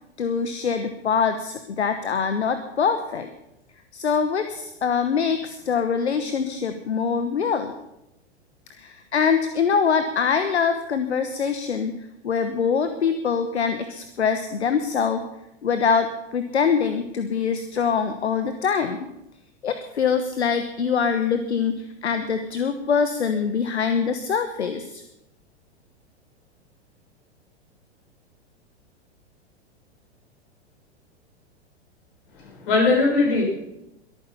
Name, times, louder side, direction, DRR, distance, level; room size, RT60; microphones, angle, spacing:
voice 1, 0.2-3.3 3.9-7.7 8.8-12.0 12.2-15.2 15.6-19.0 19.6-25.0, left 6 dB, 75° left, 10 dB, 1.2 m, -24 dB
voice 2, 32.4-33.4, left 3 dB, 50° left, -1 dB, 6.6 m, -20 dB
22.5 x 9.3 x 5.6 m, 0.87 s
figure-of-eight pair, 100°, 34 cm